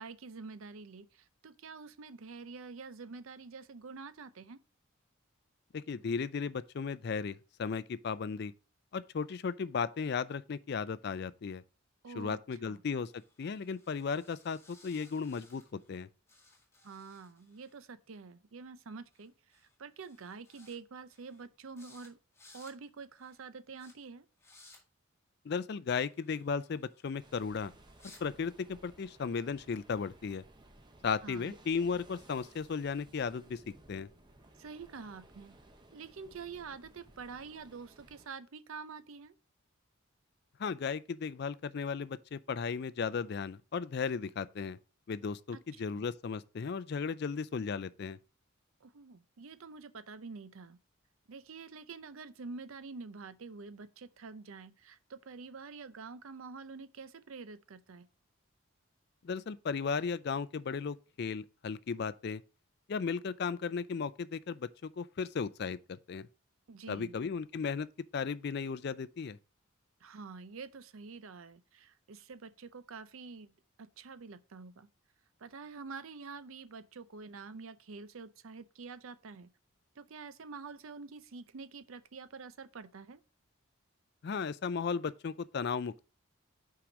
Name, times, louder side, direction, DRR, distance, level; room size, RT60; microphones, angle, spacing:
voice 1, 0.0-4.6 12.0-12.8 16.8-22.2 22.5-24.3 31.2-31.6 34.6-35.6 35.9-39.3 45.5-46.1 48.8-50.8 51.3-58.1 66.7-67.2 70.0-73.5 73.8-74.9 75.4-79.5 80.0-83.2, right 4 dB, 75° right, 0.6 m, -47 dB
voice 2, 5.7-8.5 8.9-11.6 12.1-13.1 13.4-15.6 15.9-16.1 25.5-27.7 28.2-30.4 31.0-33.6 33.9-34.1 40.6-44.8 45.1-48.2 59.2-62.4 62.9-66.3 66.9-67.9 68.1-69.4 84.2-86.0, left 5 dB, 50° left, 0.4 m, -35 dB
sound 1, 12.9-16.0 16.3-17.8 19.1-19.3 19.5-19.8 20.0-20.8 21.1-21.4 21.8-22.1 22.3-22.7 23.2-23.4 23.8-23.9 24.4-24.8 26.0-28.2, left 2 dB, 10° left, 1.9 m, -61 dB
sound 2, 27.2-38.3, right 1 dB, 20° right, 0.7 m, -59 dB
6.0 x 4.8 x 5.0 m
head